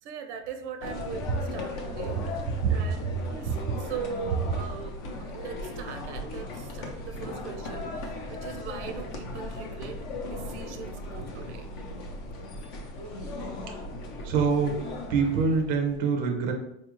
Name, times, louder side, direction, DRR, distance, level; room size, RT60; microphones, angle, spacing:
voice 1, 0.0-4.9 5.3-10.0 10.3-11.7, right 7 dB, 90° right, 7 dB, 0.6 m, -40 dB
sound 1, 0.8-16.0, left 2 dB, 45° left, 0.6 m, -37 dB
voice 2, 14.2-14.8 15.1-16.5, right 5 dB, 25° right, 2 dB, 0.5 m, -25 dB
4.4 x 2.4 x 2.9 m, 0.78 s
supercardioid pair, 165°, 34 cm